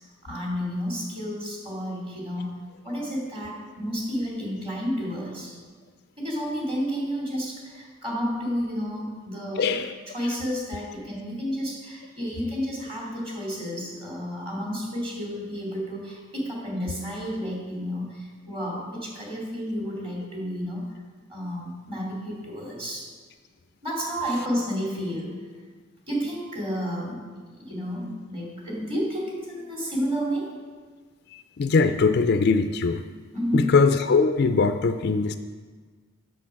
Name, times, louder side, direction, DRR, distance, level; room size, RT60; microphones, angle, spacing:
voice 1, 0.2-5.5 6.2-9.7 10.1-20.8 21.3-23.1 23.8-25.4 26.1-27.2 27.5-30.6 33.3-33.7, equal, 25° right, -3 dB, 2.7 m, -31 dB
voice 2, 9.6-9.9 31.6-33.0 33.5-35.4, left 4 dB, 50° left, 9 dB, 0.4 m, -21 dB
8.5 x 7.0 x 5.8 m, 1.5 s
head